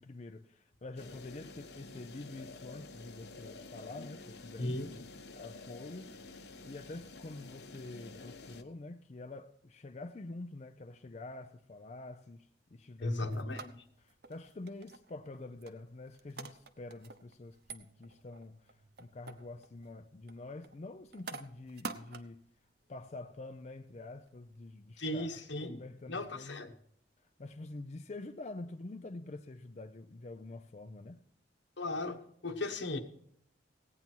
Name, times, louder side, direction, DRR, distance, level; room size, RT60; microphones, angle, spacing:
voice 1, 0.0-5.1 5.4-13.7 14.0-22.4 22.9-26.6 27.4-31.2, left 2 dB, 40° left, 0.5 m, -47 dB
sound 1, 1.0-8.6, left 3 dB, 65° left, 1.0 m, -50 dB
voice 2, 4.6-4.9 13.0-13.8 25.0-25.8 26.1-26.7 31.8-32.2 32.4-33.0, left 2 dB, 80° left, 1.3 m, -36 dB
sound 2, 13.1-24.7, right 4 dB, 60° right, 0.8 m, -50 dB
16.5 x 9.4 x 4.5 m
head